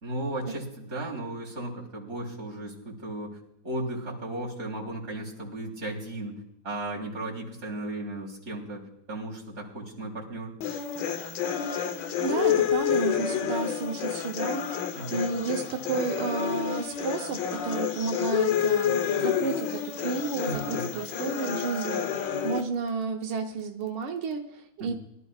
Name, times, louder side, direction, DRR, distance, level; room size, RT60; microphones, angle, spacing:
voice 1, 0.0-3.4 3.6-6.4 6.6-10.5 15.0-15.2 20.5-20.9 24.8-24.9, right 1 dB, 35° right, -3 dB, 3.8 m, -35 dB
sound 1, 10.6-22.6, left 8 dB, 65° left, 1.5 m, -29 dB
voice 2, 12.2-24.9, right 5 dB, 90° right, 3 dB, 1.8 m, -32 dB
22.5 x 13.0 x 2.4 m, 0.81 s
omnidirectional pair, 2.2 m